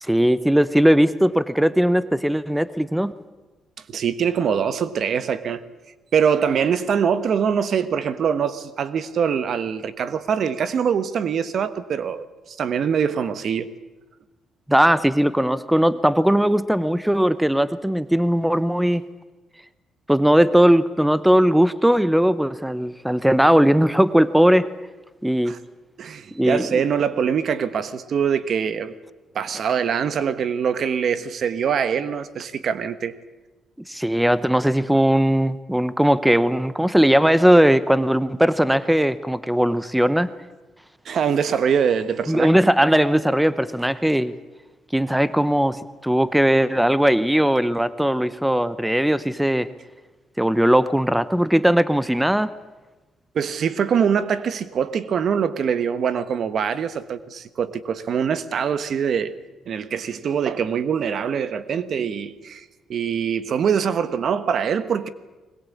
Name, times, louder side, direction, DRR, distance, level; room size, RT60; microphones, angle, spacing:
voice 1, 0.0-3.1 14.7-19.0 20.1-24.7 25.2-25.6 26.3-26.8 33.9-40.3 42.3-44.3 44.9-49.7 50.4-52.5, equal, 5° right, 0.9 m, -19 dB
voice 2, 3.9-5.6 6.1-13.7 25.5-25.6 26.0-28.9 29.3-33.1 41.0-42.5 53.3-59.3 59.7-62.6 62.9-65.1, right 7 dB, 60° right, 1.3 m, -23 dB
21.0 x 21.0 x 8.6 m
cardioid pair, 90°, 0 cm